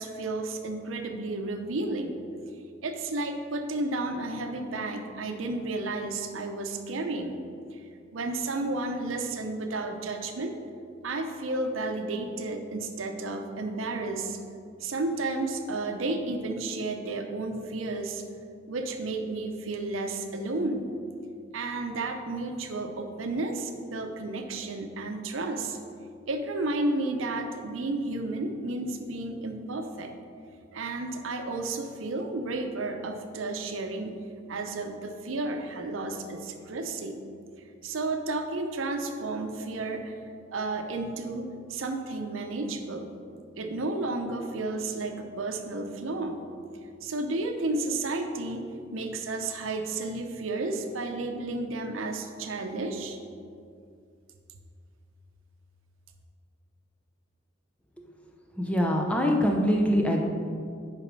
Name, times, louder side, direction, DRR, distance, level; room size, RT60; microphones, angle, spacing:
voice 1, 0.0-2.2 2.8-7.4 7.7-7.8 8.1-10.6 11.0-14.4 14.8-18.2 18.7-20.9 21.5-25.8 26.3-30.1 30.7-34.2 34.5-37.2 37.8-40.1 40.5-43.1 43.6-46.4 47.0-53.2, right 2 dB, 85° right, 5 dB, 0.6 m, -32 dB
voice 2, 58.5-60.2, equal, 5° left, 0 dB, 0.7 m, -24 dB
6.4 x 4.9 x 5.2 m, 2.3 s
head